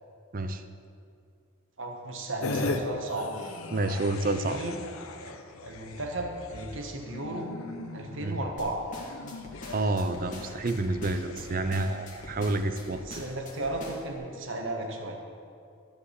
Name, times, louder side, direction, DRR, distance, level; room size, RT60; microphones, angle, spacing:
voice 1, 1.8-3.6 3.9-4.1 4.5-4.9 5.2-5.4 5.6-7.5 7.9-8.8 13.0-15.2, right 2 dB, 60° right, 2 dB, 1.5 m, -35 dB
sound 1, 2.4-2.8 3.1-13.0 13.5-13.8, left 3 dB, 80° left, 0.8 m, -40 dB
voice 2, 3.7-4.6 8.2-8.4 9.7-13.0, right 2 dB, 40° right, 9 dB, 0.6 m, -29 dB
sound 2, 8.6-14.2, left 2 dB, 35° left, 2.2 m, -44 dB
13.0 x 5.2 x 8.2 m, 2.4 s
head